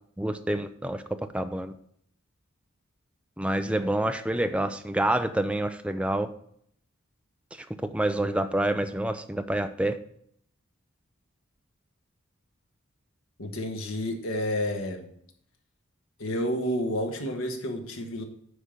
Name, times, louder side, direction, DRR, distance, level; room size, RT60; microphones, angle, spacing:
voice 1, 0.2-1.7 3.4-6.3 7.9-10.0, right 1 dB, 5° right, 9 dB, 0.4 m, -27 dB
voice 2, 13.4-15.1 16.2-18.2, equal, 90° left, 4 dB, 1.4 m, -30 dB
9.4 x 3.7 x 6.6 m, 0.67 s
head